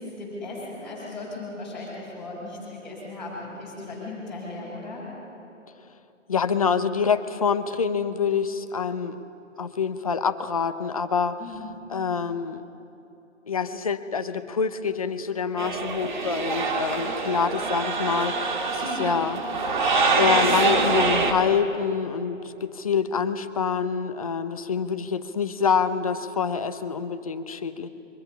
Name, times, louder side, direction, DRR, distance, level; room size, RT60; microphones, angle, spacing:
voice 1, 0.0-5.0 11.4-11.7 18.8-19.3 24.8-25.1, left 2 dB, ahead, -12 dB, 5.4 m, -37 dB
voice 2, 6.3-9.2 9.6-11.4 11.9-12.6 13.5-19.4 20.2-27.9, left 6 dB, 30° left, 11 dB, 0.8 m, -26 dB
sound 1, 15.6-21.3, right 4 dB, 40° right, 2.3 m, -25 dB
30.0 x 24.0 x 5.6 m, 2.8 s
figure-of-eight pair, 150°, 38 cm